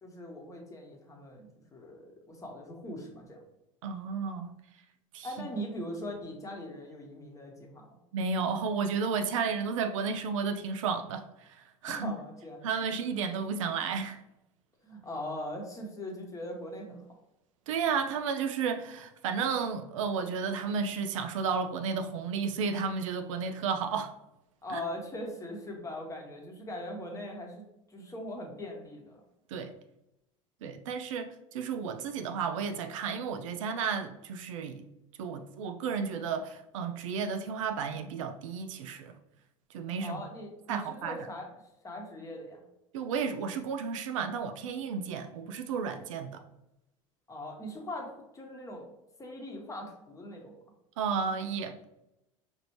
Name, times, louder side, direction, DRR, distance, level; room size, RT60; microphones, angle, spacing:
voice 1, 0.0-3.4 5.2-7.8 11.8-12.6 14.8-17.0 24.6-27.6 27.9-29.2 40.0-41.5 41.8-42.6 47.3-48.9 49.2-50.6, left 1 dB, 20° left, 1.1 m, -40 dB
voice 2, 3.8-4.6 5.1-5.3 8.1-12.1 12.6-14.2 17.7-24.1 24.7-24.8 29.5-29.7 30.6-34.9 35.2-39.1 39.7-40.2 40.7-41.2 42.9-46.4 51.0-51.9, right 5 dB, 70° right, 0.4 m, -32 dB
5.0 x 2.6 x 3.0 m
hypercardioid pair, 75°, 17 cm